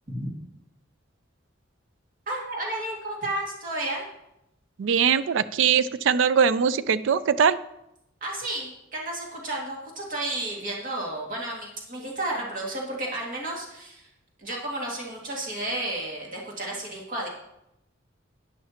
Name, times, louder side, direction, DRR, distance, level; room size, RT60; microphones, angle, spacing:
voice 1, 2.3-4.0 8.2-14.1 14.4-17.3, right 1 dB, 45° right, -2 dB, 2.2 m, -32 dB
voice 2, 4.8-7.6, right 7 dB, 70° right, 16 dB, 0.4 m, -21 dB
11.0 x 10.5 x 2.9 m, 0.85 s
head